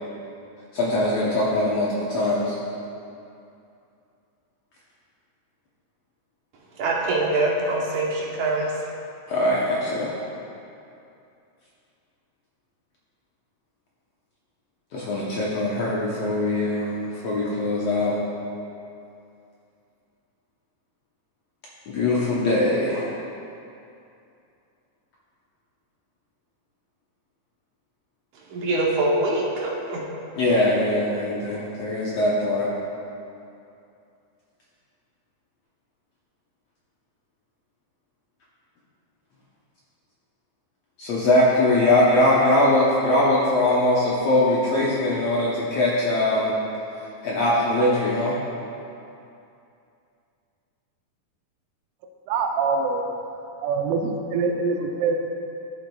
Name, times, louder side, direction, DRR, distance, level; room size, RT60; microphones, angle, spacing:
voice 1, 0.7-2.6 9.3-10.1 14.9-18.2 21.9-23.0 30.3-32.7 41.0-46.6 47.2-48.4, left 1 dB, 70° left, -6 dB, 1.7 m, -21 dB
voice 2, 6.8-8.7 28.5-30.0, right 2 dB, 70° right, -4 dB, 2.3 m, -24 dB
voice 3, 52.3-53.2 53.6-55.1, right 4 dB, 85° right, 3 dB, 2.4 m, -24 dB
13.0 x 7.3 x 2.3 m, 2.6 s
omnidirectional pair, 3.9 m